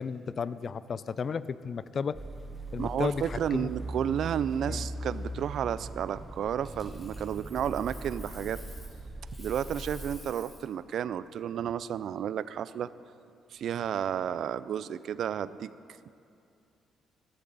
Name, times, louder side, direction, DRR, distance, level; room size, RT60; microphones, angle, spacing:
voice 1, 0.0-2.2 2.7-3.7 4.7-4.9, left 6 dB, 45° left, 16 dB, 0.4 m, -33 dB
sound 1, 2.1-10.2, right 1 dB, 15° right, 0.7 m, -40 dB
voice 2, 2.8-8.6 9.4-12.9 13.5-15.7, right 9 dB, 70° right, 16 dB, 0.3 m, -32 dB
Coin (dropping), 6.6-9.0 9.3-10.7 13.6-13.8, left 2 dB, 25° left, 3.3 m, -52 dB
14.0 x 11.5 x 4.0 m, 2.6 s
cardioid pair, 90°, 0 cm